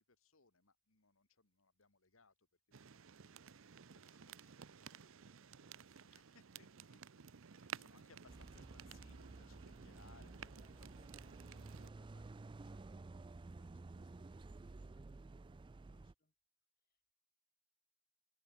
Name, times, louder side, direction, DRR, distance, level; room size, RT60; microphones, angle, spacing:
voice 1, 0.0-2.5 2.8-3.2 3.5-7.0 7.5-12.8 13.5-15.0 15.9-16.1, left 4 dB, 65° left, 2.4 m, -70 dB
sound 1, 2.7-11.9, right 7 dB, 65° right, 0.6 m, -55 dB
sound 2, 8.3-16.1, right 3 dB, 20° right, 0.3 m, -53 dB
voice 2, 15.5-16.3 16.8-17.1, left 1 dB, 45° left, 3.3 m, -84 dB
head